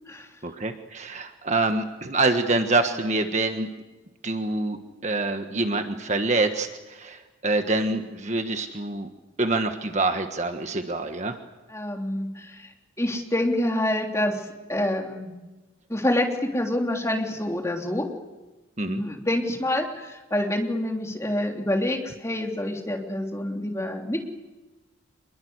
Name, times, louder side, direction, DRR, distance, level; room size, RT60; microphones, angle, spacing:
voice 1, 0.4-3.7 4.2-9.1 9.4-11.4 18.8-19.0, right 2 dB, 35° right, 6 dB, 1.5 m, -26 dB
voice 2, 11.7-12.7 13.0-15.3 15.9-18.1 18.9-24.2, left 1 dB, 15° left, 2 dB, 3.2 m, -27 dB
26.5 x 22.0 x 8.1 m, 1.1 s
head